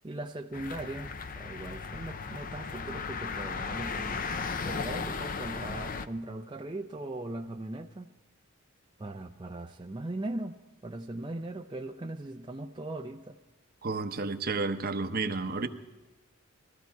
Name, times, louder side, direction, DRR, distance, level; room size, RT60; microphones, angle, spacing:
voice 1, 0.0-4.3 4.6-8.1 9.0-13.4, right 2 dB, 20° right, 2 dB, 0.5 m, -39 dB
sound 1, 0.5-6.1, left 4 dB, 40° left, 0.6 m, -36 dB
voice 2, 13.8-15.7, right 3 dB, 45° right, 9 dB, 0.8 m, -31 dB
20.5 x 15.0 x 4.6 m, 1.2 s
head